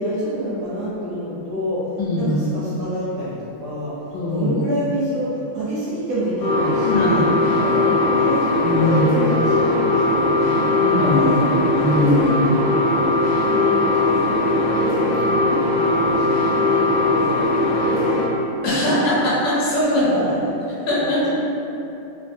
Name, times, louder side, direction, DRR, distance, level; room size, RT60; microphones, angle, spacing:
voice 1, 0.0-3.9 4.3-7.3 8.0-10.9 12.6-18.2 18.7-19.0 19.9-20.5 21.0-21.3, equal, 70° right, -9 dB, 1.0 m, -28 dB
voice 2, 2.0-2.3 4.1-4.6 6.8-8.0 8.6-9.0 10.8-12.8 18.6-20.1 20.9-21.3, left 1 dB, 75° left, -7 dB, 1.2 m, -21 dB
sound 1, 6.4-18.3, left 2 dB, 20° left, 0.6 m, -19 dB
3.3 x 2.2 x 2.6 m, 2.9 s
omnidirectional pair, 2.1 m